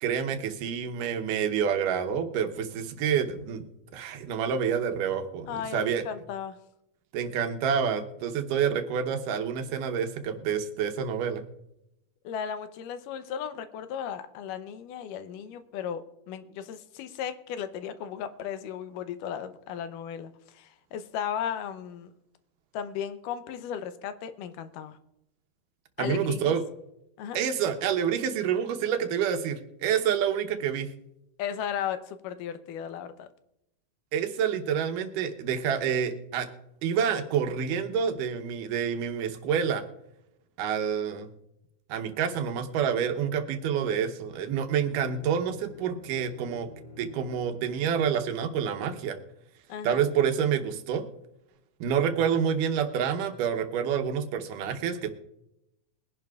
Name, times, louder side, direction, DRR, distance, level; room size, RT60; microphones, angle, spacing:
voice 1, 0.0-3.6 3.9-6.0 7.1-11.4 26.0-26.6 27.3-30.9 34.1-36.5 36.8-39.9 40.6-41.3 41.9-46.7 47.0-49.2 49.8-51.0 51.8-55.1, right 7 dB, 85° right, 6 dB, 2.5 m, -28 dB
voice 2, 5.5-6.6 12.2-22.1 22.7-25.0 26.0-26.6 27.2-27.4 31.4-33.3 49.7-50.1, left 8 dB, 85° left, 11 dB, 2.3 m, -35 dB
Bowed string instrument, 44.7-48.8, left 2 dB, 20° left, 2.2 m, -50 dB
22.0 x 11.0 x 2.3 m, 0.85 s
omnidirectional pair, 3.7 m